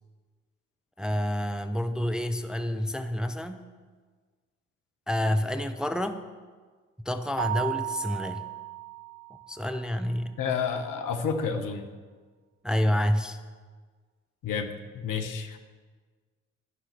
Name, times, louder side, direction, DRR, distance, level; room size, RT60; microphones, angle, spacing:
voice 1, 1.0-3.7 5.1-6.2 7.1-8.5 9.5-10.4 12.6-13.4, left 1 dB, ahead, 8 dB, 0.6 m, -28 dB
Keyboard (musical), 7.4-9.8, right 15 dB, 50° right, 0.8 m, -35 dB
voice 2, 10.4-11.9 14.4-15.6, left 6 dB, 60° left, 7 dB, 1.1 m, -30 dB
11.5 x 5.7 x 6.8 m, 1.5 s
hypercardioid pair, 45°, 36 cm